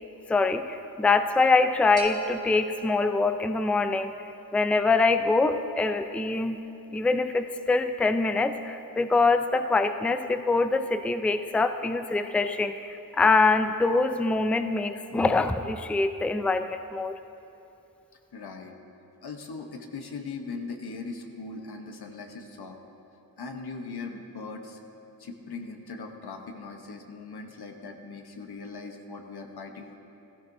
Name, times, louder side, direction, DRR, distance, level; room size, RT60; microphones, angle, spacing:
voice 1, 0.3-4.1 4.5-6.6 6.9-17.2, left 3 dB, 5° left, 9 dB, 0.4 m, -24 dB
sound 1, 2.0-3.8, right 5 dB, 90° right, 1.2 m, -40 dB
voice 2, 18.3-18.8 19.2-22.8 23.4-24.8 25.2-29.9, left 4 dB, 90° left, 4 dB, 1.0 m, -39 dB
15.0 x 14.5 x 2.6 m, 2.8 s
wide cardioid pair, 70°, 37 cm